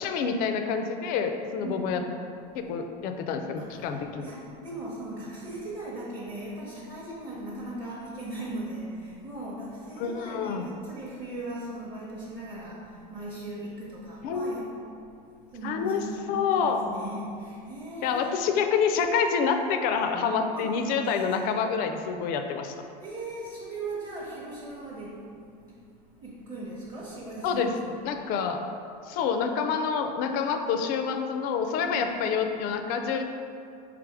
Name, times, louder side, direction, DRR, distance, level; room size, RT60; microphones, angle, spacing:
voice 1, 0.0-2.0 2.5-4.3 10.0-10.7 14.2-14.7 15.6-16.0 16.3-16.8 18.0-22.7 27.4-27.7 28.0-28.6 29.1-33.2, left 6 dB, 45° left, 6 dB, 0.4 m, -27 dB
voice 2, 1.6-2.1 3.6-14.8 15.5-18.5 20.5-20.7 21.5-21.6 23.0-25.3 25.6-25.8 26.2-28.0 31.8-32.2, right 2 dB, 20° right, -6 dB, 0.7 m, -38 dB
3.3 x 3.3 x 4.8 m, 2.5 s
supercardioid pair, 140°, 21 cm